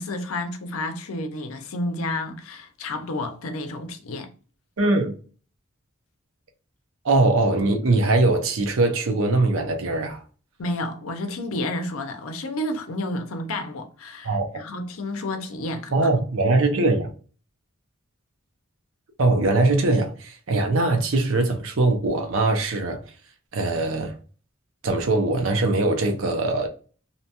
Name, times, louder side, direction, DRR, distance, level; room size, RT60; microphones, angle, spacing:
voice 1, 0.0-4.3 10.6-16.1, left 1 dB, 75° left, 0.5 m, -30 dB
voice 2, 4.8-5.2 7.0-10.2 14.2-14.6 15.9-17.1 19.2-23.0 23.5-24.1 24.8-26.7, right 2 dB, 65° right, 0.6 m, -21 dB
2.7 x 2.2 x 2.8 m
head